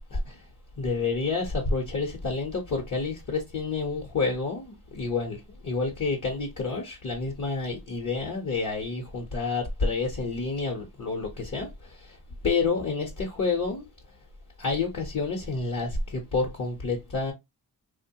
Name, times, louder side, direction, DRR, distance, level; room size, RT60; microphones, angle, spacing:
voice 1, 0.1-0.5 0.8-13.9 14.6-17.3, left 4 dB, 50° left, 0.8 m, -29 dB
2.9 x 2.1 x 2.6 m
cardioid pair, 85°, 38 cm